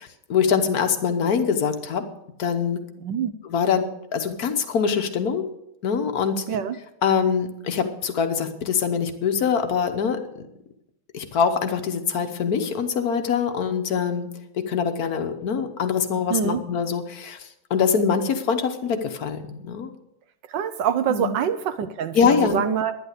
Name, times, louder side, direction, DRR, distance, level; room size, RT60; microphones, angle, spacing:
voice 1, 0.0-2.1 2.4-2.8 3.5-3.9 4.1-5.5 5.8-6.5 7.0-10.5 11.1-14.3 14.5-19.9 21.1-21.3 22.1-22.7, left 6 dB, 55° left, 8 dB, 1.4 m, -24 dB
voice 2, 3.0-3.3 6.5-6.8 16.3-16.6 20.5-23.0, right 8 dB, 70° right, 11 dB, 1.3 m, -25 dB
11.5 x 10.5 x 6.7 m, 0.83 s
omnidirectional pair, 2.2 m